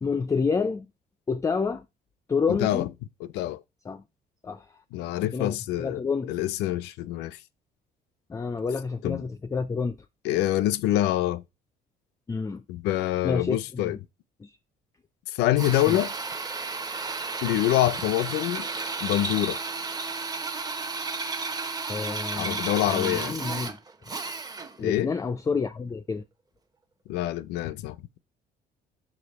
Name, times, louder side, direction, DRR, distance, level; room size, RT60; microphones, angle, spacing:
voice 1, 0.0-0.9 1.3-1.8 2.3-2.9 3.9-4.0 4.4-4.6 5.3-6.3 8.3-10.0 12.3-12.6 13.2-13.9 14.4-14.5 15.9-16.0 21.9-23.8 24.8-26.2, left 5 dB, 20° left, 0.4 m, -29 dB
voice 2, 2.5-2.9 3.2-3.6 4.9-6.0 6.3-7.4 9.0-9.3 10.2-11.4 12.7-14.0 15.3-16.1 17.4-18.7 19.0-19.6 22.4-23.4 24.8-25.1 27.1-28.0, left 14 dB, 85° left, 0.5 m, -26 dB
Drill, 15.6-24.8, right 4 dB, 20° right, 0.8 m, -33 dB
5.3 x 5.1 x 4.0 m
cardioid pair, 110°, 17 cm